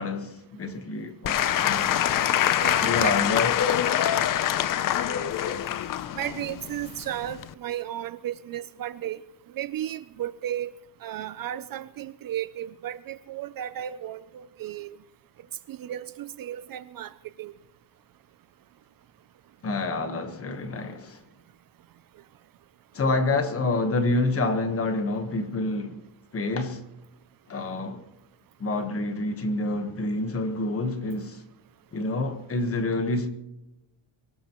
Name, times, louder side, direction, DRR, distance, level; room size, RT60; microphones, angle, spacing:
voice 1, 0.0-2.1 2.8-3.5 19.6-21.2 22.9-26.0 26.3-26.8 27.5-28.0 28.6-31.4 31.9-33.3, left 2 dB, 30° left, 1.3 m, -28 dB
Applause / Crowd, 1.2-7.5, left 11 dB, 45° left, 0.6 m, -25 dB
voice 2, 2.6-3.1 5.1-5.2 6.1-9.2 9.5-10.7 11.0-15.0 15.7-17.1 17.4-17.5, right 12 dB, 50° right, 0.5 m, -34 dB
24.0 x 18.0 x 3.0 m
cardioid pair, 175°, 46 cm